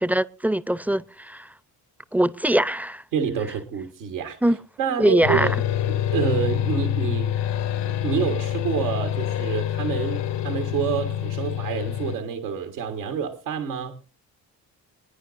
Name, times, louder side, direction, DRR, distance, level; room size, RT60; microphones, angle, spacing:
voice 1, 0.0-1.5 2.1-3.0 4.4-4.6 5.0-5.5, right 1 dB, 5° right, 0.5 m, -22 dB
voice 2, 3.1-4.4 4.8-5.5 5.9-7.3 8.0-14.0, right 7 dB, 85° right, 1.5 m, -27 dB
sound 1, 5.2-12.1, left 10 dB, 55° left, 0.9 m, -26 dB
27.5 x 9.7 x 2.6 m
hypercardioid pair, 45°, 50 cm